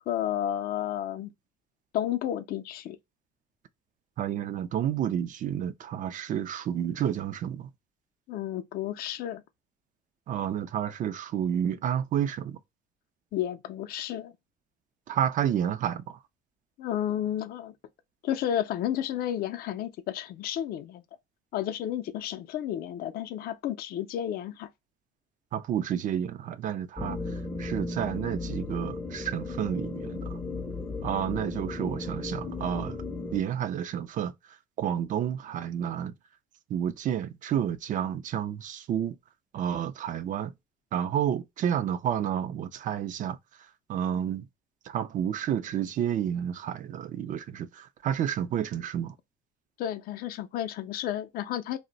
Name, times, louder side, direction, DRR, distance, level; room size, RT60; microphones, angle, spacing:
voice 1, 0.1-1.3 1.9-3.0 8.3-9.4 13.3-14.3 16.8-17.7 18.2-21.0 21.5-24.7 49.8-51.8, left 11 dB, 65° left, 0.4 m, -32 dB
voice 2, 4.2-7.7 10.3-12.6 15.1-16.2 25.5-27.2 27.6-30.2 31.0-33.0 33.3-34.3 34.8-36.1 36.7-39.2 39.5-40.5 40.9-43.4 43.9-44.5 44.9-49.1, right 9 dB, 50° right, 0.4 m, -30 dB
sound 1, 27.0-33.4, left 3 dB, 10° left, 0.5 m, -35 dB
2.5 x 2.1 x 3.8 m
cardioid pair, 110°, 17 cm